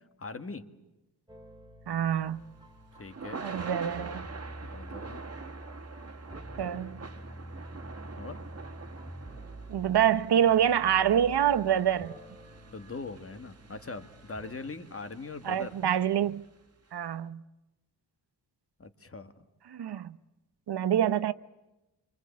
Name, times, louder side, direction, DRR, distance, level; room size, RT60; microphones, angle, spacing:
voice 1, 0.2-0.7 3.0-3.5 4.6-5.2 8.2-8.4 12.7-15.8 18.8-19.3, left 3 dB, 30° left, 1.8 m, -41 dB
sound 1, 1.3-14.6, right 1 dB, 10° right, 2.4 m, -47 dB
voice 2, 1.9-2.4 3.4-4.2 6.6-7.0 9.7-12.1 15.4-16.4 16.9-17.4 19.7-20.2 20.7-21.3, right 9 dB, 65° right, 0.9 m, -26 dB
Thunder / Rain, 2.2-16.4, right 4 dB, 35° right, 2.0 m, -46 dB
27.5 x 25.5 x 8.4 m
wide cardioid pair, 150°, 43 cm